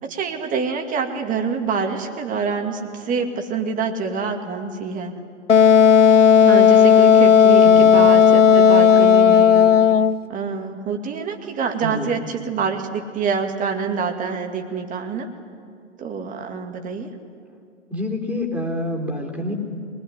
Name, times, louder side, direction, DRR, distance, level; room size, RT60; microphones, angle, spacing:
voice 1, 0.0-5.1 6.4-9.7 10.3-15.3 16.0-17.1, right 5 dB, 20° right, 4 dB, 2.3 m, -26 dB
Wind instrument woodwind instrument, 5.5-10.2, left 7 dB, 90° left, 0.7 m, -12 dB
voice 2, 7.6-8.0 11.8-12.1 17.9-19.5, left 1 dB, 5° right, 0 dB, 3.8 m, -27 dB
23.5 x 20.0 x 9.7 m, 2.3 s
figure-of-eight pair, 110°, 36 cm